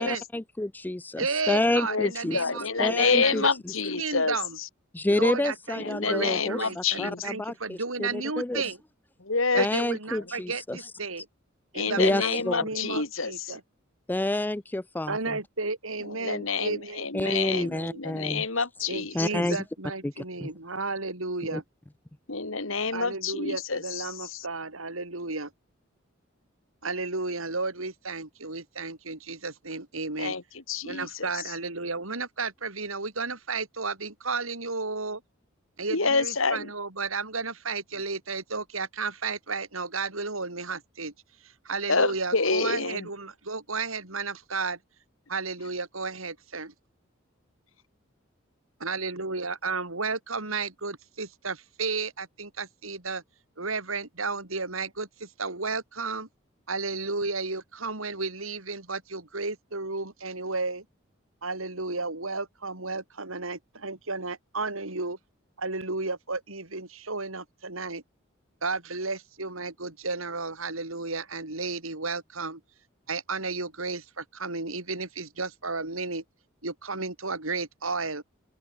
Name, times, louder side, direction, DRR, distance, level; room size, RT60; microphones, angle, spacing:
voice 1, 0.0-2.4 2.8-3.4 4.9-8.6 9.6-10.8 12.0-12.6 14.1-15.4 17.1-18.5 19.1-19.6 20.0-20.5 21.5-21.6, left 1 dB, 10° left, 0.4 m, -29 dB
voice 2, 1.2-3.5 4.0-4.6 5.1-8.8 9.5-11.3 11.7-13.6 15.1-18.0 18.9-21.6 22.9-25.5 26.8-30.4 30.8-35.2 35.8-41.1 41.4-44.8 45.3-46.7 48.8-53.2 53.6-56.3 56.7-60.8 61.4-65.2 65.6-68.0 68.6-72.6 73.1-76.2 76.6-78.2, right 3 dB, 90° right, 5.5 m, -33 dB
voice 3, 1.9-4.7 5.8-7.3 9.2-9.7 11.7-13.6 16.1-19.3 22.3-24.4 30.2-30.4 30.7-31.4 35.9-36.7 41.9-43.1, left 4 dB, 75° left, 3.0 m, -28 dB
open air
head